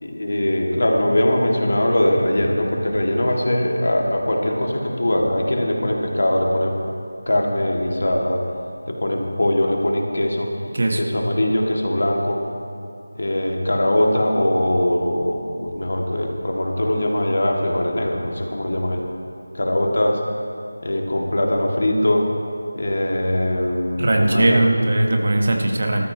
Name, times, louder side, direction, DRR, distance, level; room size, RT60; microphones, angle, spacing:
voice 1, 0.0-6.8 7.3-8.4 8.9-10.5 10.9-12.4 13.1-19.0 19.5-20.2 20.8-22.3 22.7-24.7, left 1 dB, 55° left, 0 dB, 2.0 m, -21 dB
voice 2, 24.0-26.1, right 1 dB, 35° right, 3 dB, 1.2 m, -19 dB
20.0 x 13.5 x 2.9 m, 2.5 s
figure-of-eight pair, 180°, 0 cm